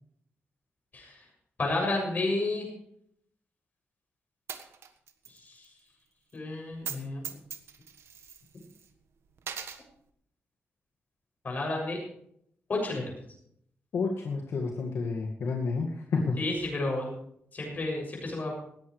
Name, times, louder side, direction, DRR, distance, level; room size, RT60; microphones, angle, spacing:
voice 1, 0.9-1.2 1.6-2.7 5.3-5.7 6.3-7.3 11.4-12.0 12.7-13.2 16.4-17.1 17.5-18.5, left 2 dB, 40° left, 0 dB, 7.1 m, -31 dB
Coin (dropping), 4.5-5.4 5.6-5.7 6.7-7.0 7.2-8.9 9.4-9.8, right 7 dB, 80° right, 1.4 m, -40 dB
voice 2, 13.9-16.4, left 4 dB, 80° left, 0 dB, 2.0 m, -30 dB
18.5 x 14.0 x 3.3 m, 0.69 s
wide cardioid pair, 140°, 4 cm